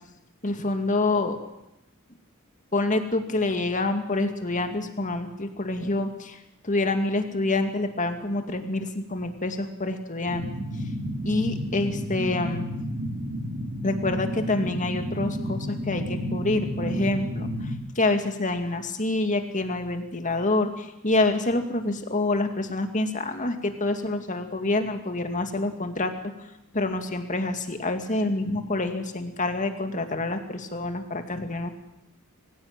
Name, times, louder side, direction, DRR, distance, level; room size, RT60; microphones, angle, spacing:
voice 1, 0.4-1.4 2.7-10.5 11.2-12.7 13.8-26.1 26.7-31.7, left 2 dB, 35° left, 6 dB, 2.3 m, -27 dB
sound 1, 10.2-17.7, equal, 75° right, 5.1 m, -31 dB
24.5 x 16.0 x 9.0 m, 0.88 s
head